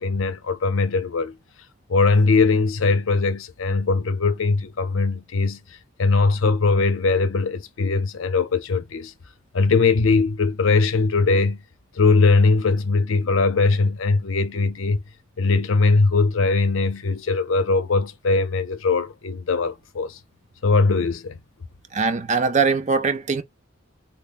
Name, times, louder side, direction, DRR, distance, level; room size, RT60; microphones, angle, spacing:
voice 1, 0.0-1.4 1.9-5.6 6.0-9.1 9.5-11.6 11.9-15.0 15.4-20.2 20.6-21.4, left 3 dB, 75° left, 0.6 m, -20 dB
voice 2, 21.9-23.4, right 4 dB, 35° right, 0.5 m, -21 dB
3.3 x 2.1 x 3.9 m
head